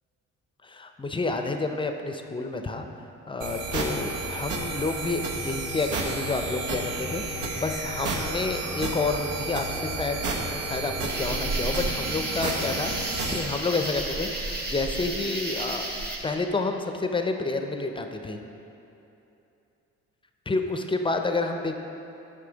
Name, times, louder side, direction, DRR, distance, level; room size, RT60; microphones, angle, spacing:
voice 1, 0.6-2.9 3.3-10.2 10.7-15.9 16.2-18.4 20.5-21.7, left 3 dB, 15° left, 5 dB, 0.5 m, -29 dB
sound 1, 3.4-13.4, right 3 dB, 90° right, 0.9 m, -31 dB
sound 2, 11.1-16.2, right 2 dB, 30° right, 1.4 m, -32 dB
8.3 x 5.5 x 3.9 m, 2.9 s
cardioid pair, 90°, 30 cm